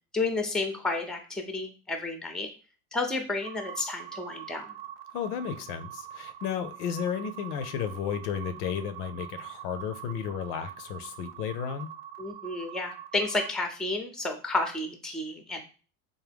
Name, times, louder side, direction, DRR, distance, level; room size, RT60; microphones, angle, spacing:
voice 1, 0.1-2.5 2.9-4.8 12.2-15.6, left 2 dB, ahead, 0.6 m, -31 dB
sound 1, 3.4-13.5, right 11 dB, 50° right, 0.7 m, -44 dB
voice 2, 5.1-11.9, left 8 dB, 70° left, 0.6 m, -33 dB
3.5 x 2.2 x 3.4 m
hypercardioid pair, 80°, 47 cm